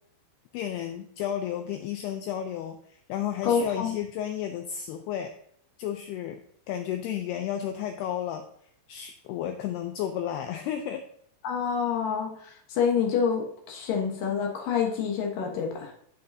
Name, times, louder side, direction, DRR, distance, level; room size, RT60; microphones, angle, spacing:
voice 1, 0.5-5.3 5.8-6.4 6.7-8.5 8.9-11.1, left 10 dB, 85° left, 6 dB, 2.3 m, -32 dB
voice 2, 3.4-4.0 11.4-15.9, left 6 dB, 65° left, 0 dB, 2.4 m, -27 dB
14.5 x 5.5 x 2.7 m, 0.67 s
omnidirectional pair, 5.2 m